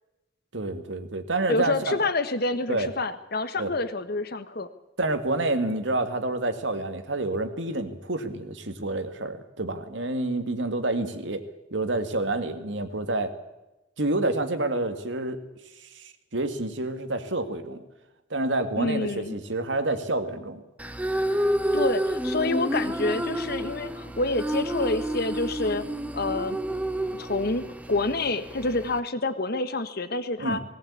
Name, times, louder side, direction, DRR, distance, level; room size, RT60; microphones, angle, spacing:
voice 1, 0.5-2.0 2.7-2.9 3.6-3.7 5.0-11.5 11.7-13.3 14.0-15.4 15.8-17.8 18.3-20.6 30.4-30.6, right 2 dB, 90° right, 8 dB, 2.1 m, -28 dB
voice 2, 1.5-4.7 18.8-19.3 21.7-25.8 26.1-26.6 27.2-30.6, left 2 dB, 60° left, 11 dB, 1.4 m, -28 dB
sound 1, 20.8-29.0, right 1 dB, 10° right, 1.1 m, -29 dB
18.5 x 18.5 x 8.5 m, 0.99 s
head